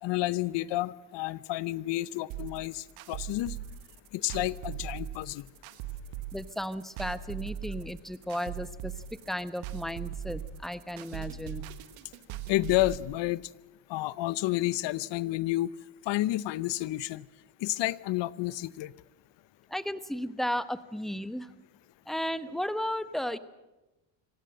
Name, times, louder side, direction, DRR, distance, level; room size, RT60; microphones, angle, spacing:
voice 1, 0.0-3.6 4.1-5.5 12.5-13.4 13.9-15.7 16.1-17.2 17.6-18.9, left 17 dB, 70° left, 20 dB, 0.8 m, -30 dB
sound 1, 2.3-13.0, right 12 dB, 90° right, 1.5 m, -39 dB
voice 2, 6.3-11.7 19.7-21.5 22.1-23.4, equal, ahead, 13 dB, 1.1 m, -34 dB
25.0 x 16.5 x 7.7 m, 1.0 s
supercardioid pair, 75°, 45 cm